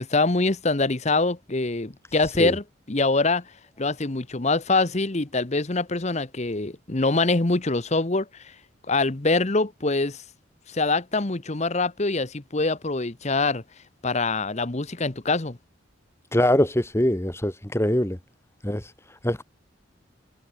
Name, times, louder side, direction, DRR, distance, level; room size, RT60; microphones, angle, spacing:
voice 1, 0.0-3.5 3.8-8.5 8.9-10.2 10.7-13.6 14.0-15.6, left 3 dB, 35° left, 1.0 m, -24 dB
voice 2, 16.3-18.2 18.6-18.8 19.2-19.4, left 1 dB, 15° left, 1.9 m, -22 dB
head